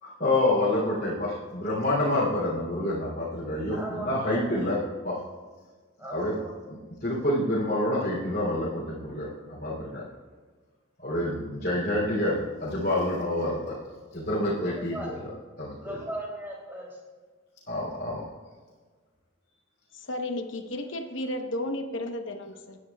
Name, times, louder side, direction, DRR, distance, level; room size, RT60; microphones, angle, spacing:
voice 1, 0.0-5.2 6.1-6.4 6.7-10.0 11.0-13.8 14.1-15.0 15.6-16.0 17.7-18.2, left 1 dB, 45° left, -8 dB, 3.0 m, -28 dB
voice 2, 3.7-4.5 6.0-6.6 14.8-15.1 15.8-17.0, right 1 dB, 10° right, -3 dB, 2.9 m, -38 dB
voice 3, 19.9-22.8, left 1 dB, 70° left, 5 dB, 1.0 m, -33 dB
19.5 x 9.8 x 2.3 m, 1.4 s
head